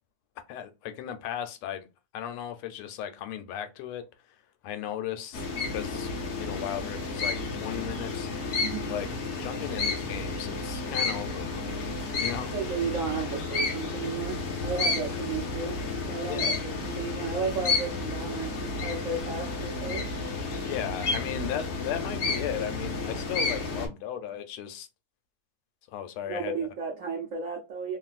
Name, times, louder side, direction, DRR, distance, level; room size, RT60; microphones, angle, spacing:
voice 1, 0.5-1.9 2.1-4.0 4.6-8.3 8.9-9.1 9.4-12.5 15.0-15.3 16.3-16.6 20.6-24.9 25.9-26.5, left 10 dB, 85° left, 1.4 m, -36 dB
sound 1, 5.3-23.9, left 3 dB, 60° left, 0.9 m, -31 dB
voice 2, 8.6-8.9 12.5-20.1 26.3-28.0, right 5 dB, 75° right, 0.7 m, -34 dB
3.3 x 2.4 x 2.3 m
omnidirectional pair, 2.3 m